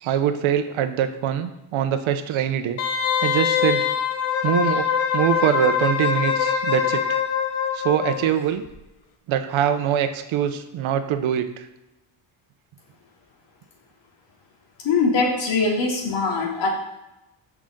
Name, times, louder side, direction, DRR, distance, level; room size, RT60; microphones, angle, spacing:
voice 1, 0.0-2.8 3.2-3.9 4.4-7.2 7.7-8.6 9.3-11.6, right 10 dB, 75° right, 9 dB, 1.1 m, -23 dB
Wind instrument woodwind instrument, 2.8-8.3 8.6-8.7, left 7 dB, 80° left, 1.5 m, -23 dB
voice 2, 14.8-16.7, left 4 dB, 65° left, -1 dB, 3.1 m, -22 dB
15.0 x 6.1 x 3.9 m, 0.93 s
cardioid pair, 160°, 48 cm